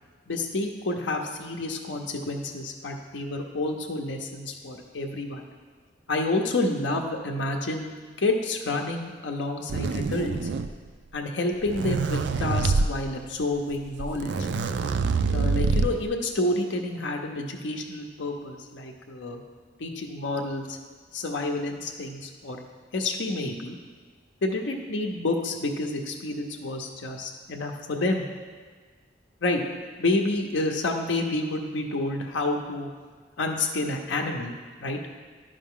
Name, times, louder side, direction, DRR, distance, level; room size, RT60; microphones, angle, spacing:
voice 1, 0.3-5.5 6.1-7.9 8.2-10.5 11.1-14.5 15.3-19.4 19.8-20.8 21.1-22.6 22.9-23.8 24.4-28.3 29.4-29.6 30.0-32.9 33.4-34.6 34.8-35.0, left 2 dB, 80° left, 2 dB, 0.6 m, -29 dB
sound 1, 9.7-10.9 11.5-12.9 13.7-13.8 14.0-16.1, right 4 dB, 70° right, 0.4 m, -25 dB
11.0 x 5.2 x 3.7 m, 1.5 s
head